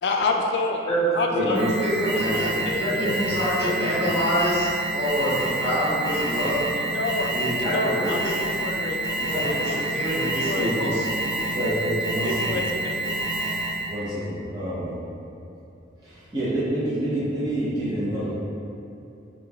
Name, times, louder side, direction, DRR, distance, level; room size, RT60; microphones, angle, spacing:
voice 1, 0.0-0.9 1.1-1.7 2.1-3.1 3.6-4.0 6.9-7.3 7.7-9.2 9.4-9.8 10.1-10.9 12.2-13.1, left 3 dB, 65° left, 2 dB, 0.3 m, -29 dB
voice 2, 1.4-6.7 7.3-8.3 9.2-11.2, equal, 10° left, -14 dB, 1.0 m, -26 dB
Alarm, 1.5-13.9, right 2 dB, 60° right, 1.3 m, -28 dB
voice 3, 3.7-4.3 10.5-10.8 11.5-12.6 13.9-15.0 16.0-18.4, right 1 dB, 20° right, -11 dB, 0.6 m, -28 dB
5.2 x 2.7 x 2.2 m, 2.7 s
head